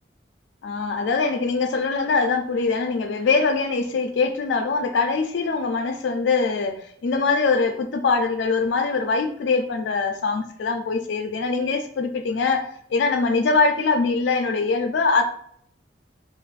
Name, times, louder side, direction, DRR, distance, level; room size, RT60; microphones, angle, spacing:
voice 1, 0.6-15.2, left 4 dB, 85° left, 5 dB, 0.4 m, -23 dB
2.5 x 2.4 x 3.9 m, 0.65 s
head